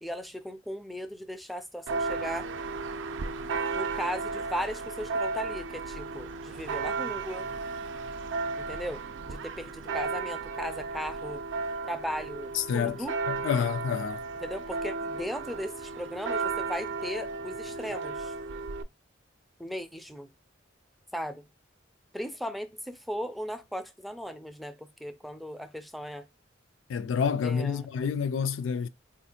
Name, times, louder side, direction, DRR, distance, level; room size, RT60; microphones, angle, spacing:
voice 1, 0.0-2.5 3.7-7.5 8.6-11.4 11.8-13.1 14.4-18.3 19.6-20.3 21.1-21.4 22.1-26.2 27.4-27.9, equal, ahead, 0.3 m, -37 dB
Church bell, 1.9-18.8, right 4 dB, 70° right, 0.4 m, -34 dB
voice 2, 12.5-14.2 26.9-28.9, left 6 dB, 75° left, 0.3 m, -29 dB
4.0 x 2.5 x 2.7 m
head